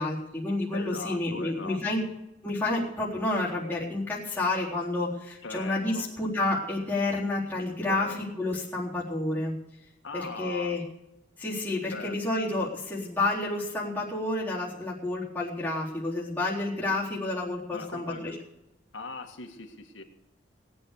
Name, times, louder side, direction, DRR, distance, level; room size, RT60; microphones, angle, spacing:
voice 1, 0.0-2.0 2.4-9.5 10.1-10.8 11.4-18.4, left 2 dB, 10° left, -6 dB, 3.8 m, -30 dB
voice 2, 0.7-1.8 5.4-6.1 7.9-8.2 10.0-10.8 11.9-12.2 17.7-18.4 18.9-20.0, left 3 dB, 85° left, 4 dB, 2.1 m, -39 dB
19.0 x 8.8 x 6.7 m, 0.89 s
head